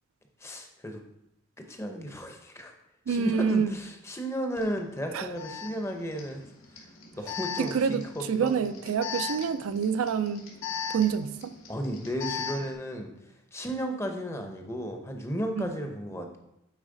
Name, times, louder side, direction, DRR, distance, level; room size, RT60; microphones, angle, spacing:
voice 1, 0.4-1.0 1.7-2.7 3.1-6.4 6.8-6.9 7.2-8.7 11.7-13.1 13.5-16.4, equal, 10° left, 4 dB, 0.6 m, -34 dB
voice 2, 3.1-3.8 5.1-5.3 7.6-10.5 10.9-11.5 15.6-15.7, right 6 dB, 80° right, 11 dB, 0.4 m, -27 dB
Alarm, 4.6-4.7 5.4-12.7, left 6 dB, 70° left, 1.4 m, -38 dB
8.8 x 4.0 x 3.8 m, 0.84 s
head